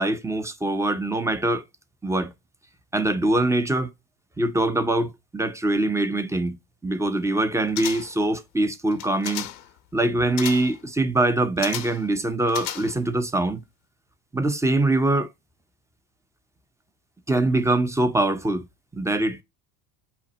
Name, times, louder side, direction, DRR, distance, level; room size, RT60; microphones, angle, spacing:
voice 1, 0.0-1.6 2.0-2.3 2.9-3.9 4.4-6.6 6.8-9.5 9.9-13.6 14.3-15.3 17.3-18.6 18.9-19.4, right 2 dB, 5° right, 0.5 m, -23 dB
sound 1, 7.8-8.3 8.9-9.7 10.4-10.8 11.6-12.1 12.5-13.2 13.5-13.6, left 12 dB, 90° left, 0.9 m, -34 dB
5.7 x 2.1 x 4.1 m
supercardioid pair, 85°, 50 cm